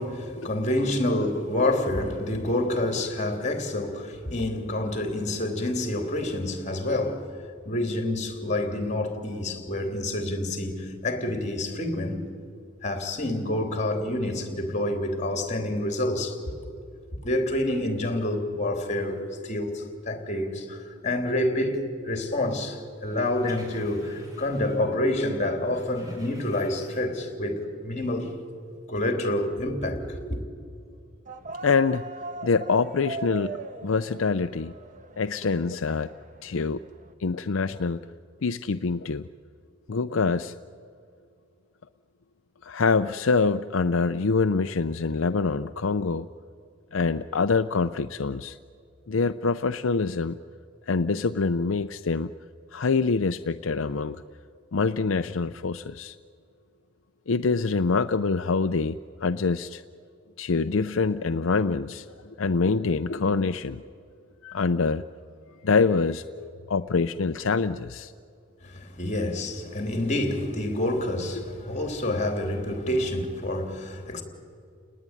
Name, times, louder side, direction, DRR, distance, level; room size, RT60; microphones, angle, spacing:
voice 1, 0.0-7.3 7.7-12.3 12.8-16.4 17.2-28.3 28.9-30.4 68.6-74.2, left 1 dB, 35° left, 3.4 m, -28 dB
sound 1, 23.0-25.0 25.3-27.3 27.6-27.7, equal, 20° right, 6.0 m, -49 dB
sound 2, 31.3-37.1, right 3 dB, 40° right, 1.2 m, -40 dB
voice 2, 31.6-32.0 32.4-34.7 35.2-36.1 36.4-36.8 37.2-38.0 38.4-39.2 39.9-40.5 42.6-46.3 46.9-48.6 49.1-50.4 50.9-52.3 52.7-54.2 54.7-56.2 57.3-59.8 60.4-62.1 62.4-63.8 64.4-65.0 65.6-68.1, left 4 dB, 70° left, 0.6 m, -25 dB
30.0 x 20.0 x 9.8 m
head